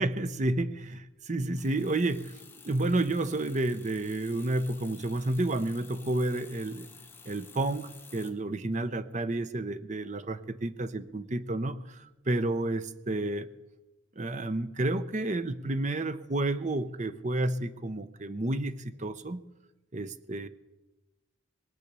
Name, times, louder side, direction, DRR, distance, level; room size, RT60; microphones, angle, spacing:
voice 1, 0.0-6.9 7.3-13.5 14.2-19.4 19.9-20.5, right 2 dB, 35° right, 0.7 m, -31 dB
sound 1, 1.6-8.3, left 4 dB, 10° left, 1.1 m, -52 dB
22.0 x 8.3 x 6.8 m
head